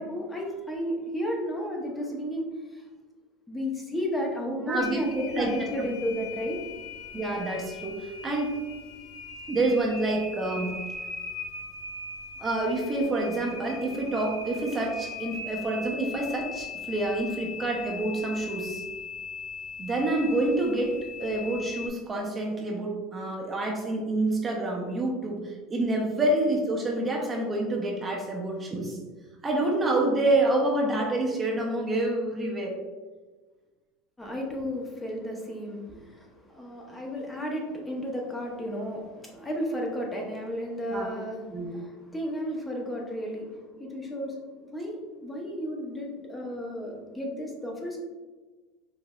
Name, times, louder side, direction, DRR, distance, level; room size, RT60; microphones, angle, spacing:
voice 1, 0.0-2.8 3.5-6.6 34.2-44.4 44.6-48.0, equal, 10° left, -1 dB, 0.7 m, -33 dB
voice 2, 4.7-5.5 7.1-8.6 9.5-10.7 12.4-18.8 19.8-20.9 21.2-29.0 29.4-32.8 40.9-41.1 41.5-41.8, right 2 dB, 20° right, 0 dB, 0.7 m, -27 dB
sound 1, 4.8-21.9, left 4 dB, 65° left, 1.0 m, -40 dB
4.9 x 2.6 x 2.3 m, 1.3 s
supercardioid pair, 110°, 0 cm